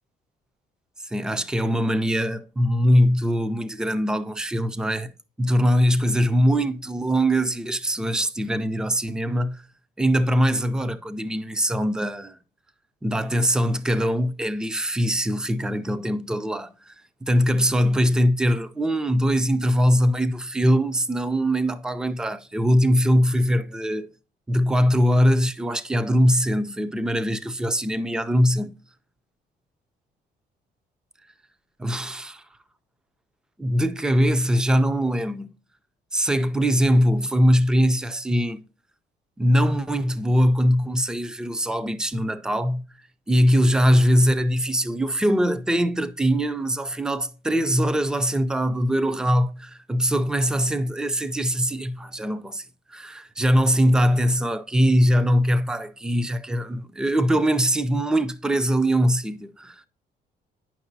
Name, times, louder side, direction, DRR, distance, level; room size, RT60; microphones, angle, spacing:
voice 1, 1.0-5.1 5.4-9.6 10.0-12.4 13.0-16.9 17.2-24.1 24.5-28.7 31.8-32.4 33.6-35.5 36.1-38.6 39.4-42.8 43.3-59.9, equal, 5° right, 0.3 m, -22 dB
9.3 x 5.9 x 2.6 m
cardioid pair, 170°, 17 cm